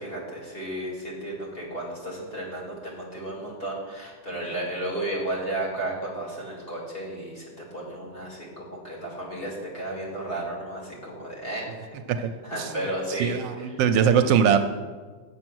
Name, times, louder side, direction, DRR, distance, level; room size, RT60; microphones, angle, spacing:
voice 1, 0.0-11.7 12.4-13.7, right 1 dB, 30° left, -4 dB, 2.4 m, -33 dB
voice 2, 13.2-14.6, right 8 dB, 75° right, 8 dB, 1.2 m, -21 dB
7.7 x 7.5 x 6.1 m, 1.4 s
omnidirectional pair, 2.0 m